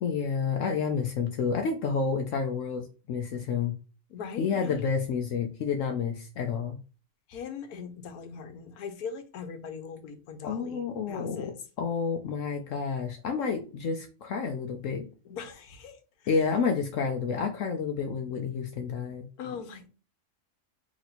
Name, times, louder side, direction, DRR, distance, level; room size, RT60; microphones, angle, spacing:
voice 1, 0.0-3.7 4.4-6.8 10.4-11.5 11.8-15.1 16.3-19.2, left 5 dB, 65° left, 4 dB, 0.9 m, -29 dB
voice 2, 4.1-4.9 7.3-11.6 15.2-16.4 19.4-19.9, left 6 dB, 90° left, 7 dB, 1.3 m, -40 dB
3.0 x 3.0 x 4.1 m, 0.35 s
omnidirectional pair, 1.5 m